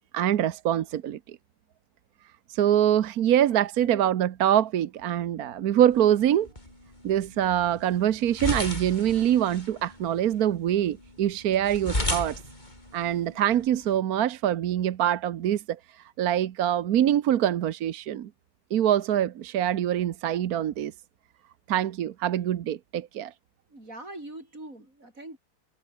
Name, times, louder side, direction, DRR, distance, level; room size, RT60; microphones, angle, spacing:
voice 1, 0.1-1.4 2.5-6.5 7.0-12.4 12.9-15.8 16.2-18.3 18.7-20.9 21.7-23.3, right 11 dB, 60° right, 1.1 m, -24 dB
sound 1, 5.9-14.0, left 1 dB, 20° left, 5.5 m, -36 dB
voice 2, 23.7-25.4, right 1 dB, 40° right, 8.3 m, -43 dB
omnidirectional pair, 2.3 m